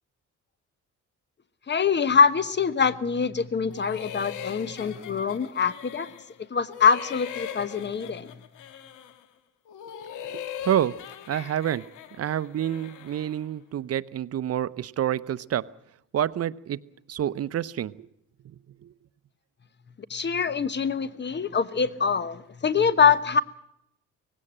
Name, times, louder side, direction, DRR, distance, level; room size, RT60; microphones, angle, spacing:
voice 1, 1.7-6.1 6.5-8.3 20.1-23.4, left 6 dB, 35° left, 15 dB, 1.2 m, -24 dB
sound 1, 3.7-6.4 6.7-9.2 9.7-13.4, left 9 dB, 85° left, 1.6 m, -40 dB
voice 2, 10.3-10.9 11.3-11.8 12.2-15.6 16.1-16.8 17.1-18.1 18.8-18.9, right 11 dB, 50° right, 15 dB, 0.8 m, -28 dB
18.5 x 16.5 x 8.8 m, 0.77 s
cardioid pair, 90°, 30 cm